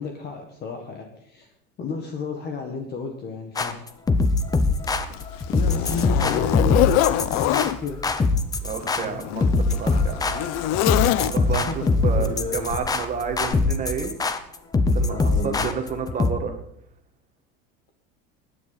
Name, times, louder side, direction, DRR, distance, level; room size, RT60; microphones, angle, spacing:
voice 1, 0.0-1.5 1.8-3.8 5.5-8.3 11.7-12.7 15.1-15.7, left 5 dB, 35° left, 4 dB, 1.7 m, -32 dB
sound 1, 3.6-16.3, left 3 dB, 10° left, 0.7 m, -23 dB
Zipper (clothing), 4.1-4.3 4.8-7.8 8.7-11.7 12.7-12.9 13.5-13.6, left 14 dB, 60° left, 0.7 m, -24 dB
voice 2, 8.6-10.2 11.3-14.1 14.9-16.5, right 6 dB, 25° right, 6 dB, 1.8 m, -30 dB
19.5 x 9.8 x 4.2 m, 0.74 s
cardioid pair, 160°, 29 cm